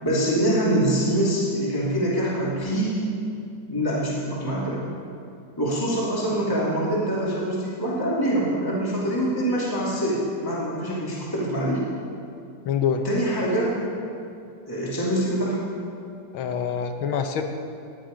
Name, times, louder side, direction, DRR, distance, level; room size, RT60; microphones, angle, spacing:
voice 1, 0.0-3.1 3.7-4.9 5.6-11.9 13.0-13.8 14.7-15.6, right 1 dB, 10° left, -6 dB, 2.5 m, -24 dB
voice 2, 12.7-13.0 16.3-17.4, left 7 dB, 90° left, 6 dB, 1.8 m, -25 dB
18.5 x 11.0 x 5.2 m, 2.5 s
omnidirectional pair, 2.2 m